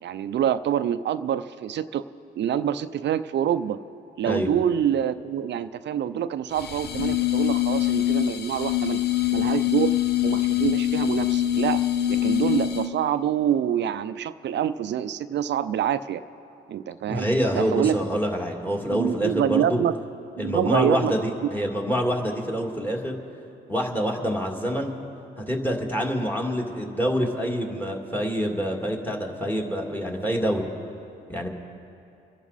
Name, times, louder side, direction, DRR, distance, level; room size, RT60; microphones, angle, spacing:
voice 1, 0.0-2.0 2.4-3.8 4.2-9.0 9.3-9.9 10.2-11.8 12.1-16.2 16.7-17.3 17.5-18.0 18.9-20.0 20.4-21.1, right 10 dB, 60° right, 13 dB, 0.6 m, -26 dB
sound 1, 6.5-13.0, left 14 dB, 55° left, 0.9 m, -24 dB
voice 2, 17.1-19.8 20.4-23.2 23.7-24.9 25.5-30.7 31.3-31.5, equal, 10° left, 1 dB, 2.2 m, -26 dB
27.5 x 11.0 x 4.1 m, 2.7 s
cardioid pair, 90°, 20 cm